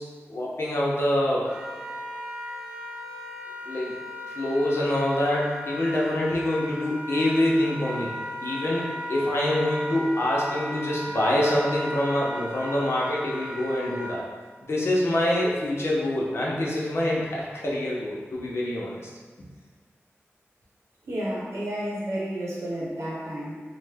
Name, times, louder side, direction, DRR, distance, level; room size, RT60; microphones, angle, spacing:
voice 1, 0.0-1.5 3.6-4.0 4.3-8.1 8.4-14.2 14.6-19.1, left 1 dB, 65° left, -4 dB, 0.7 m, -25 dB
Wind instrument woodwind instrument, 1.4-14.2, left 1 dB, 15° right, 0.8 m, -36 dB
voice 2, 21.1-23.5, right 1 dB, 90° right, -7 dB, 0.9 m, -31 dB
3.1 x 2.1 x 3.4 m, 1.5 s
wide cardioid pair, 85°, 5 cm